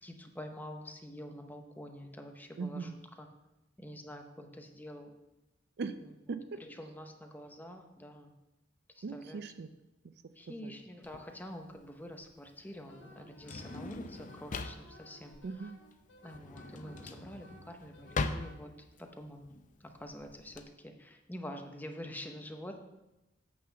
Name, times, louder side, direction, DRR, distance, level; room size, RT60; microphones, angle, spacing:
voice 1, 0.0-3.3 3.8-5.1 6.6-8.3 9.0-9.4 10.4-15.3 16.2-18.7 19.0-19.5 19.8-22.8, equal, 10° left, 4 dB, 0.7 m, -47 dB
voice 2, 2.6-2.9 5.8-6.0 6.3-6.6 9.0-9.7 10.5-10.7 15.4-15.8, right 4 dB, 60° right, 11 dB, 0.4 m, -39 dB
Drawer open or close, 11.0-20.6, left 3 dB, 45° left, 0.5 m, -41 dB
Wind instrument woodwind instrument, 12.9-18.6, left 1 dB, 70° left, 1.5 m, -57 dB
8.6 x 3.9 x 6.7 m, 0.98 s
head